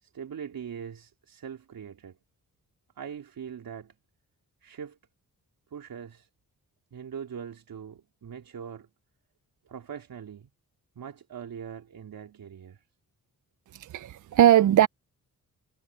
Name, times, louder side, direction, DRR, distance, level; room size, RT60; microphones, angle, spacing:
voice 1, 0.0-2.1 3.0-3.9 4.6-5.0 5.7-6.3 6.9-8.9 9.6-10.5 10.9-12.8, right 8 dB, 75° right, 3.3 m, -41 dB
voice 2, 13.7-14.9, right 11 dB, 60° right, 0.5 m, -20 dB
wide cardioid pair, 125°, 35 cm